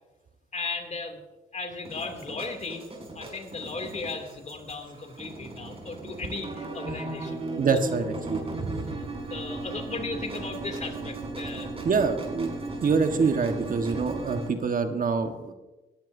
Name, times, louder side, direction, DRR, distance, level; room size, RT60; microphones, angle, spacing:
voice 1, 0.5-1.2 1.5-2.9 3.1-7.4 8.9-11.8, left 3 dB, 40° left, 5 dB, 2.7 m, -36 dB
sound 1, 1.9-14.5, right 2 dB, 30° right, 5.5 m, -37 dB
voice 2, 7.6-8.9 11.8-12.5 12.8-15.5, right 5 dB, 45° right, 6 dB, 1.4 m, -26 dB
19.0 x 14.0 x 2.7 m, 1.1 s
supercardioid pair, 60°, 19 cm